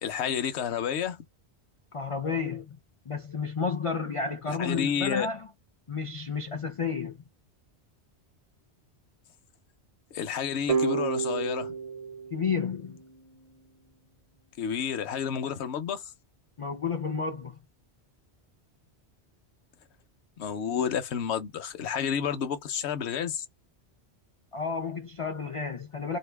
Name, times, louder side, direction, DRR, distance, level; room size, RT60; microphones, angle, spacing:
voice 1, 0.0-1.2 4.6-5.3 10.1-11.7 14.6-16.0 20.4-23.4, left 8 dB, 75° left, 0.9 m, -30 dB
voice 2, 1.9-2.8 3.1-5.5 5.9-7.2 12.3-13.0 16.6-17.6 24.5-26.2, left 5 dB, 45° left, 0.4 m, -31 dB
sound 1, 10.7-13.5, right 5 dB, 40° right, 0.8 m, -31 dB
2.8 x 2.7 x 3.3 m
omnidirectional pair, 1.1 m